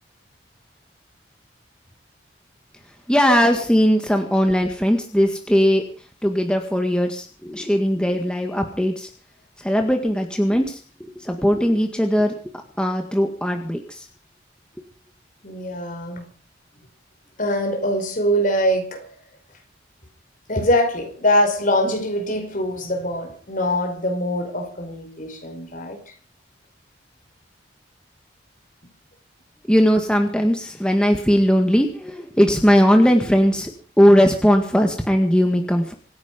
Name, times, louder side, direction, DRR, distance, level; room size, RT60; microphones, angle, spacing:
voice 1, 3.1-5.8 6.2-9.1 9.6-10.8 11.2-12.3 12.8-14.1 29.7-33.7 34.0-35.9, equal, 5° left, 1.9 m, -19 dB
voice 2, 15.4-16.3 17.4-19.1 20.5-26.1, equal, 45° left, 5.1 m, -23 dB
25.5 x 10.5 x 5.3 m
head